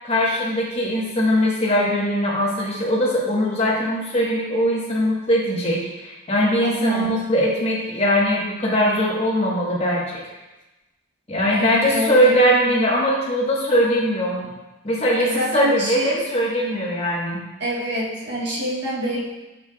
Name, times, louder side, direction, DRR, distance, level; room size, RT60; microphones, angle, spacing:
voice 1, 0.0-10.2 11.3-14.4 14.8-17.4, equal, 30° left, -4 dB, 1.3 m, -21 dB
voice 2, 6.6-7.1 11.5-12.3 12.7-12.8 15.2-16.1 17.6-19.2, equal, 55° right, -4 dB, 1.5 m, -26 dB
7.5 x 6.7 x 2.4 m, 1.1 s
head